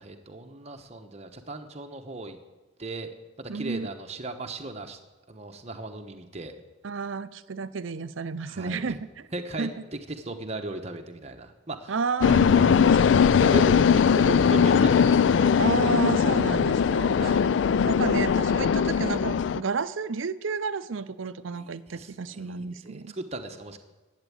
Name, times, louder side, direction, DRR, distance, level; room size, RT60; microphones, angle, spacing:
voice 1, 0.0-2.4 2.8-3.1 3.4-5.0 5.3-6.5 8.5-9.0 9.3-11.9 12.5-12.8 13.4-15.9 17.2-17.5 21.6-22.6 22.8-23.8, right 2 dB, 30° right, 5 dB, 1.0 m, -37 dB
voice 2, 3.5-3.9 6.8-9.3 9.6-9.7 11.9-13.0 15.6-17.3 17.8-23.1, right 5 dB, 70° right, 15 dB, 0.6 m, -31 dB
sound 1, 12.2-19.6, left 6 dB, 60° left, 0.3 m, -20 dB
12.0 x 8.3 x 8.5 m, 1.2 s
head